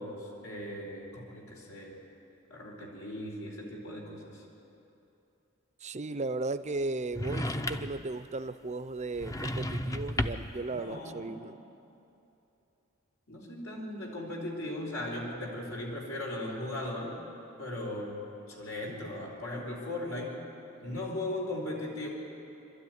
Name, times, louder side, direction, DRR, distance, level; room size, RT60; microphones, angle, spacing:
voice 1, 0.0-2.0 2.5-4.5 10.7-11.4 13.3-17.2 17.6-20.4 20.8-22.1, left 1 dB, 80° left, -2 dB, 4.7 m, -38 dB
voice 2, 5.8-11.6, right 3 dB, 35° right, 12 dB, 0.7 m, -36 dB
sound 1, 7.1-8.1 9.2-10.6, left 1 dB, 15° left, 0.7 m, -33 dB
27.5 x 13.0 x 9.5 m, 2.9 s
head